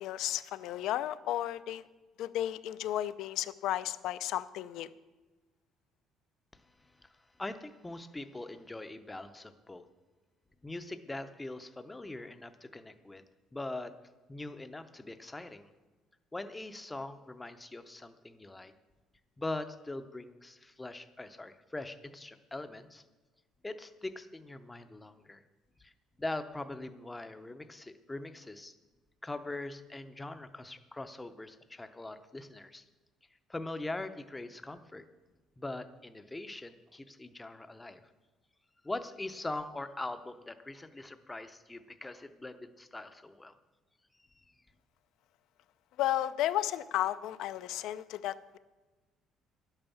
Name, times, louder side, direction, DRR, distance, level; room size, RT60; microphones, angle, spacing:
voice 1, 0.0-1.9 2.2-4.9 46.0-48.6, left 13 dB, 65° left, 15 dB, 0.5 m, -33 dB
voice 2, 6.5-7.1 7.4-9.9 10.6-13.2 13.5-13.9 14.3-15.7 16.3-18.7 19.4-23.0 23.6-25.4 25.8-25.9 26.2-28.7 29.2-32.8 33.5-35.0 35.6-38.0 38.8-43.6 44.4-44.5, left 2 dB, 10° left, 10 dB, 0.6 m, -42 dB
11.5 x 8.9 x 7.1 m, 1.2 s
cardioid pair, 170°, 0 cm